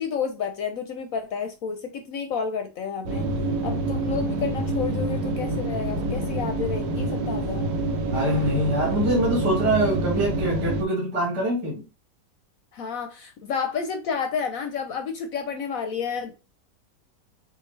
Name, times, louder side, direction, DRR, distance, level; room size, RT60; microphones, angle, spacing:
voice 1, 0.0-3.3 3.6-7.7 12.7-16.4, left 6 dB, 70° left, 0.9 m, -30 dB
sound 1, 3.1-10.8, right 2 dB, 85° right, 1.4 m, -27 dB
voice 2, 8.1-11.8, right 1 dB, 70° right, 2.8 m, -24 dB
6.4 x 2.5 x 3.1 m
omnidirectional pair, 1.8 m